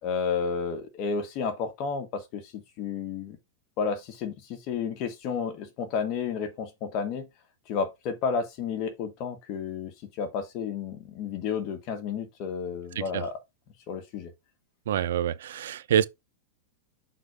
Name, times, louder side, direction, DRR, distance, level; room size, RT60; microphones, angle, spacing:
voice 1, 0.0-3.4 3.8-7.3 7.7-13.4 13.9-14.3, left 6 dB, 35° left, 1.6 m, -31 dB
voice 2, 14.9-16.0, right 9 dB, 80° right, 0.6 m, -26 dB
6.2 x 4.0 x 4.9 m
supercardioid pair, 165°, 0 cm